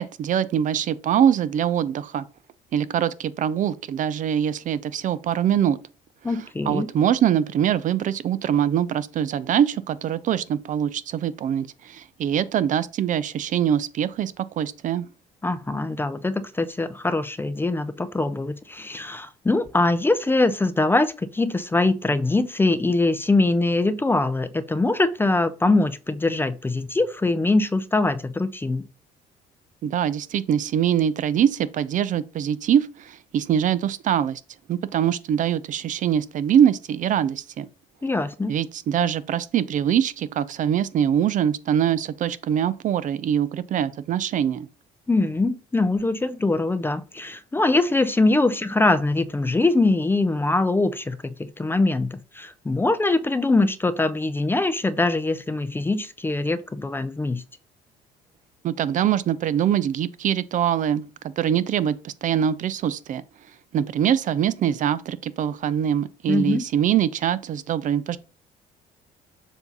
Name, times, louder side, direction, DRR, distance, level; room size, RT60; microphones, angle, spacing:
voice 1, 0.0-2.2 2.7-5.8 6.7-15.1 29.8-34.4 34.7-37.7 38.5-44.7 58.6-61.1 61.4-63.2 63.7-68.2, right 9 dB, 50° right, 0.4 m, -23 dB
voice 2, 6.2-6.9 15.4-28.8 38.0-38.5 45.1-57.4 66.3-66.6, left 2 dB, 15° left, 0.4 m, -23 dB
7.2 x 2.7 x 5.2 m
cardioid pair, 110°, 17 cm